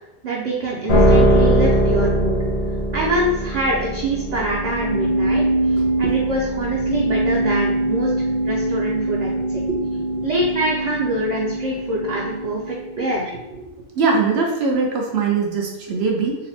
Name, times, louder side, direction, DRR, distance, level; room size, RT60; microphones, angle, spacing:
voice 1, 0.2-2.4 2.9-9.6 10.2-13.3, right 1 dB, 50° right, -4 dB, 0.6 m, -25 dB
sound 1, 0.9-13.2, right 1 dB, 40° left, 0.6 m, -21 dB
voice 2, 9.7-10.5 13.0-13.1 14.0-16.4, right 4 dB, 80° right, 0 dB, 1.0 m, -22 dB
3.9 x 2.1 x 4.2 m, 0.97 s
omnidirectional pair, 1.0 m